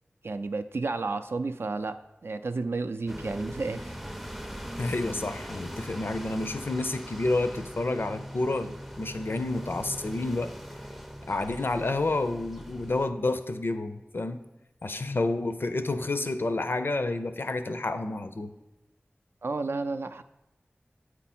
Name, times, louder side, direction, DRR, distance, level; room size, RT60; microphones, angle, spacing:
voice 1, 0.2-4.0 19.4-20.2, right 3 dB, 70° right, 0.3 m, -32 dB
sound 1, 3.1-13.1, equal, 5° right, 0.4 m, -41 dB
voice 2, 4.8-10.5 11.3-14.4 14.8-18.5, left 2 dB, 60° left, 0.5 m, -29 dB
8.1 x 4.5 x 4.3 m
wide cardioid pair, 50°, 4 cm